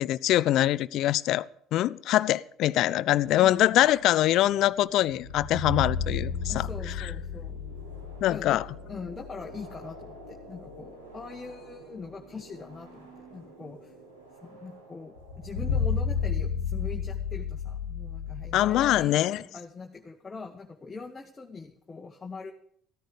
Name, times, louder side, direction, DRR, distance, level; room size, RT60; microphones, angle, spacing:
voice 1, 0.0-1.5 1.7-6.7 7.0-7.1 8.2-8.6 18.5-19.4, left 14 dB, 55° left, 0.5 m, -24 dB
sound 1, 2.9-16.3, right 2 dB, 85° right, 3.7 m, -50 dB
voice 2, 3.4-3.8 6.5-7.6 8.3-8.6 8.9-13.9 14.4-22.5, left 4 dB, 25° left, 1.7 m, -42 dB
sound 2, 5.2-9.8 10.1-10.2 15.2-19.1, left 5 dB, 85° left, 1.5 m, -32 dB
15.0 x 14.0 x 5.1 m
figure-of-eight pair, 55°, 0 cm